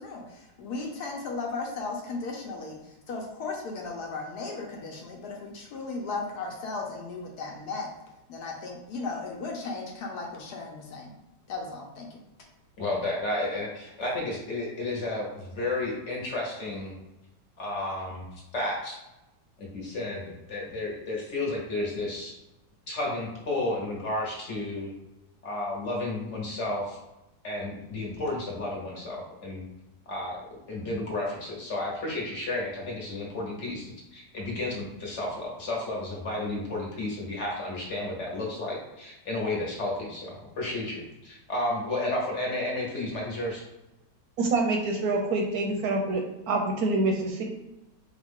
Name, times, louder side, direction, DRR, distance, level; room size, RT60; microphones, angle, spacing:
voice 1, 0.0-7.9 8.3-11.1 11.5-12.2, left 3 dB, 70° left, 0 dB, 1.2 m, -36 dB
voice 2, 12.8-16.9 17.6-18.2 18.5-19.0 19.6-22.3 22.9-24.9 25.4-27.0 27.4-29.6 30.1-30.4 30.7-43.6, left 2 dB, 45° left, -3 dB, 1.2 m, -32 dB
voice 3, 44.4-46.2 46.5-47.4, right 2 dB, 70° right, 2 dB, 1.0 m, -26 dB
4.7 x 2.4 x 3.5 m, 0.95 s
omnidirectional pair, 1.9 m